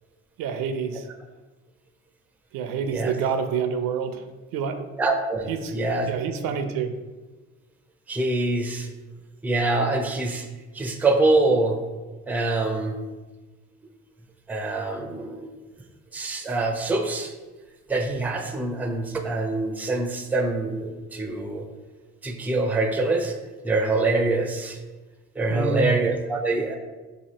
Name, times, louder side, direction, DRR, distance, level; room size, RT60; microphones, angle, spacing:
voice 1, 0.4-1.1 2.5-4.3 4.5-4.8 5.5-5.7 6.1-6.9 25.5-25.9, right 6 dB, 75° right, 8 dB, 0.5 m, -27 dB
voice 2, 2.8-3.2 5.0-6.1 8.1-8.9 9.4-10.5 10.7-11.8 12.3-13.0 14.5-15.5 16.1-17.3 17.9-21.7 22.2-23.4 23.6-24.8 25.4-26.7, right 2 dB, 5° right, 4 dB, 0.4 m, -25 dB
2.8 x 2.7 x 4.2 m, 1.2 s
cardioid pair, 85°, 33 cm